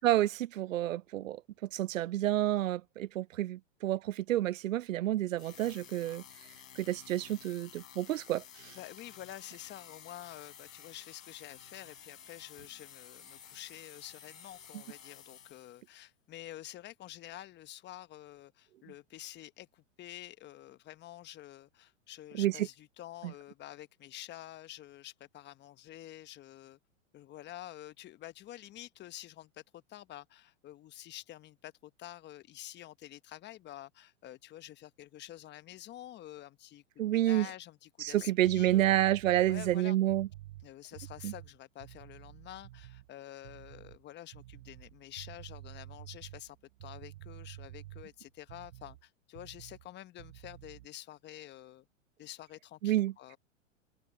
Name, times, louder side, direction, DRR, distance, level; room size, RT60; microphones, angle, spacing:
voice 1, 0.0-1.4 1.7-6.2 6.8-8.7 22.4-22.7 23.2-23.3 37.0-37.5 38.0-40.3 41.2-41.3 52.8-53.1, right 14 dB, 85° right, 0.5 m, -29 dB
sound 1, 5.4-15.9, left 8 dB, 85° left, 4.4 m, -53 dB
voice 2, 8.7-26.8 27.1-39.0 39.5-40.0 40.6-51.8 52.2-53.4, left 13 dB, 30° left, 1.1 m, -49 dB
sound 2, 38.1-43.1 43.4-44.0 44.3-49.0 49.3-49.9 50.2-50.9, right 16 dB, 60° right, 1.2 m, -50 dB
open air
hypercardioid pair, 115°, 38 cm